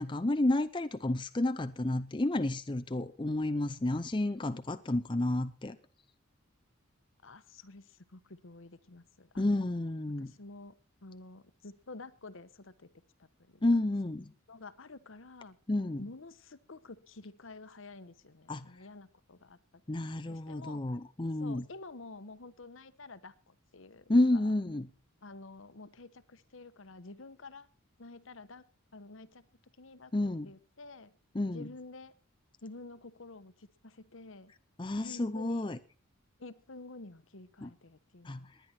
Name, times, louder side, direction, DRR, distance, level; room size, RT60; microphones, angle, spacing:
voice 1, 0.0-5.8 9.4-10.3 13.6-14.3 15.7-16.0 18.5-18.7 19.9-21.6 24.1-24.9 30.1-30.5 31.3-31.7 34.8-35.8 37.6-37.7 38.2-38.5, left 1 dB, 20° left, 0.6 m, -30 dB
voice 2, 7.2-9.7 10.2-10.7 11.0-12.9 13.2-13.6 14.5-15.6 16.0-19.6 20.3-20.9 21.4-24.5 25.2-27.7 28.0-28.6 28.9-29.5 29.8-31.1 31.5-32.1 32.6-34.5 35.0-35.7 36.4-38.5, left 3 dB, 65° left, 1.1 m, -50 dB
19.5 x 10.5 x 4.4 m
head